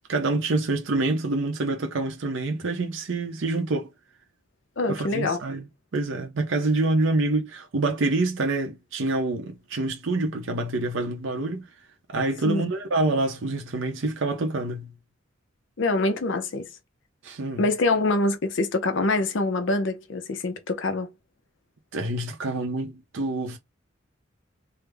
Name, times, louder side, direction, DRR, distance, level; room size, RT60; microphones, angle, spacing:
voice 1, 0.1-3.9 4.9-5.7 5.9-11.7 12.1-14.9 17.2-17.6 21.9-23.6, right 2 dB, 65° right, 0.6 m, -26 dB
voice 2, 4.8-5.4 12.4-12.7 15.8-16.7 17.6-21.1, left 2 dB, 60° left, 0.6 m, -25 dB
3.4 x 2.0 x 3.3 m
head